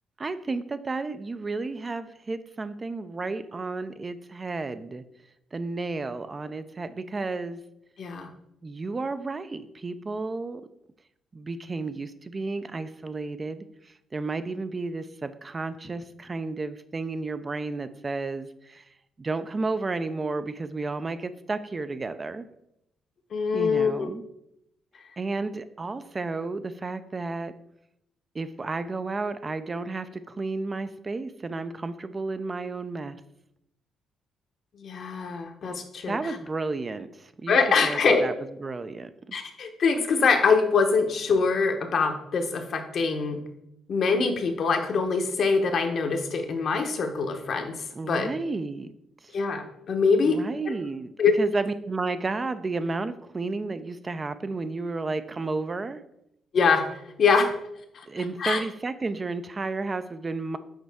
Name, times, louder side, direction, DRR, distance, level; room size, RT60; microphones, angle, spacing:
voice 1, 0.2-5.0 5.5-7.6 8.6-10.6 11.3-13.7 14.1-18.9 19.2-22.5 23.5-24.2 25.2-27.5 28.3-33.2 36.1-38.3 38.6-39.4 48.0-48.9 49.2-49.3 50.3-51.1 51.4-56.0 58.1-60.6, right 3 dB, 30° right, 11 dB, 0.4 m, -32 dB
voice 2, 8.0-8.3 23.3-24.1 34.8-36.3 37.5-38.2 39.3-43.4 43.9-47.8 48.1-48.3 49.3-50.4 50.6-50.7 51.2-51.3 56.5-56.8 57.2-57.5 58.4-58.6, left 5 dB, 55° left, 5 dB, 0.9 m, -24 dB
6.3 x 4.4 x 3.5 m, 0.80 s
cardioid pair, 90°, 0 cm